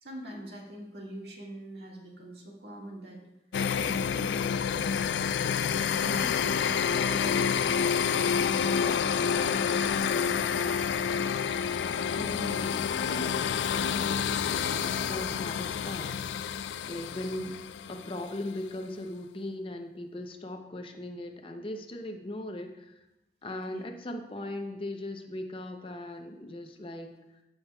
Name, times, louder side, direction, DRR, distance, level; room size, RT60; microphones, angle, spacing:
voice 1, 0.0-3.2 3.8-7.4 8.3-10.6 23.7-23.9, equal, 70° right, -1 dB, 1.7 m, -43 dB
sound 1, 3.5-18.3, left 7 dB, 80° left, 0.3 m, -28 dB
voice 2, 12.2-16.2 16.9-17.6 17.9-23.0 23.4-27.1, left 1 dB, 30° left, 5 dB, 0.6 m, -39 dB
14.5 x 5.8 x 2.3 m, 0.95 s
head